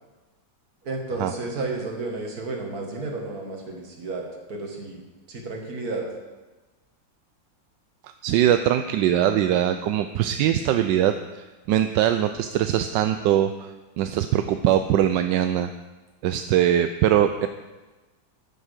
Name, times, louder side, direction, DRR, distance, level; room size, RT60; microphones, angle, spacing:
voice 1, 0.8-5.0 5.3-6.1, right 3 dB, 50° right, 1 dB, 2.4 m, -32 dB
voice 2, 8.2-15.7 16.2-17.5, right 11 dB, 75° right, 9 dB, 1.2 m, -22 dB
11.0 x 9.5 x 6.6 m, 1.2 s
omnidirectional pair, 2.1 m